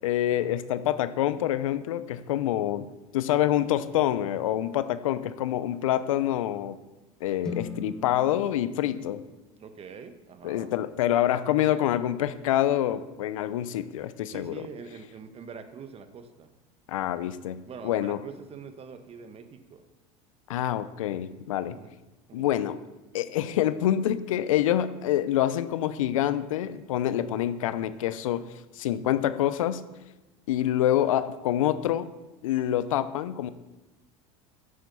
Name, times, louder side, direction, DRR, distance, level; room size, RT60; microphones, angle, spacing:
voice 1, 0.0-2.9 3.1-6.8 7.2-9.2 10.4-14.6 16.9-18.2 20.5-21.8 22.3-22.8 23.1-28.5 28.8-29.8 30.5-32.1 32.4-33.5, left 12 dB, 90° left, 14 dB, 0.7 m, -26 dB
sound 1, 7.4-11.5, left 3 dB, 5° left, 1.4 m, -42 dB
voice 2, 9.6-10.7 14.3-16.5 17.7-19.8 21.7-22.0 22.3-22.5, right 6 dB, 35° right, 9 dB, 1.4 m, -44 dB
10.5 x 8.7 x 7.0 m, 1.1 s
supercardioid pair, 100°, 17 cm